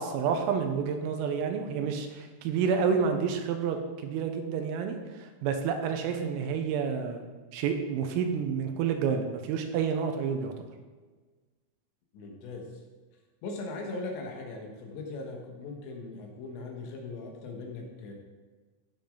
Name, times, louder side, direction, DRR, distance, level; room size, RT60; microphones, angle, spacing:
voice 1, 0.0-7.3 7.5-10.7, right 6 dB, 90° right, 5 dB, 3.7 m, -29 dB
voice 2, 12.1-12.8 13.4-18.1, left 3 dB, 65° left, 1 dB, 3.5 m, -39 dB
15.0 x 7.0 x 3.9 m, 1.4 s
omnidirectional pair, 5.9 m